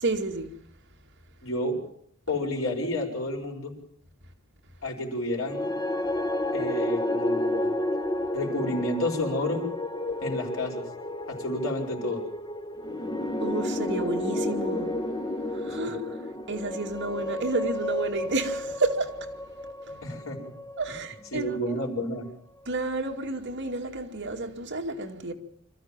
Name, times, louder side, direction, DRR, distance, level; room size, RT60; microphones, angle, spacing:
voice 1, 0.0-0.5 13.4-15.0 15.5-16.2 16.5-19.3 19.9-20.0 20.8-21.6 22.7-25.3, right 2 dB, 55° right, 2.4 m, -31 dB
voice 2, 1.4-1.8 2.3-3.8 4.8-5.7 6.5-7.7 8.3-9.6 10.2-10.8 11.3-12.2 15.8-16.0 20.0-20.5 21.3-22.3, left 1 dB, 70° left, 5.1 m, -30 dB
sound 1, 5.4-21.7, left 1 dB, 20° left, 1.2 m, -31 dB
26.0 x 14.0 x 7.4 m
head